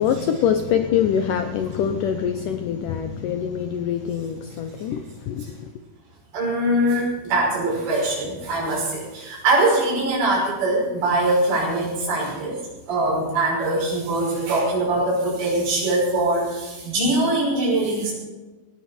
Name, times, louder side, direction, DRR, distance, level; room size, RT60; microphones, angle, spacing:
voice 1, 0.0-5.7, left 8 dB, 80° left, 7 dB, 1.9 m, -24 dB
voice 2, 6.3-12.6 12.9-18.1, right 2 dB, 65° right, -4 dB, 7.8 m, -22 dB
18.0 x 16.5 x 4.4 m, 1.2 s
omnidirectional pair, 4.9 m